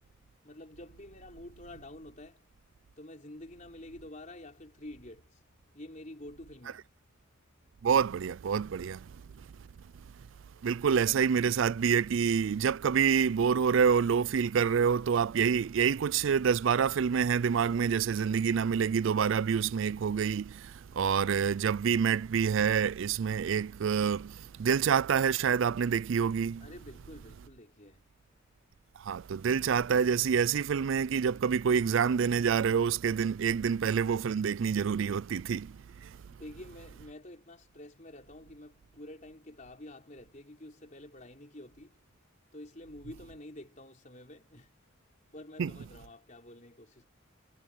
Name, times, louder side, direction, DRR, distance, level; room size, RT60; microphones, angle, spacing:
voice 1, 0.0-2.5 3.0-6.9 26.6-28.4 36.3-42.0 42.5-44.8 45.3-47.1, left 1 dB, 35° left, 4.2 m, -49 dB
voice 2, 7.8-9.5 10.6-26.6 29.0-36.2 45.6-45.7, right 7 dB, 65° right, 0.4 m, -27 dB
head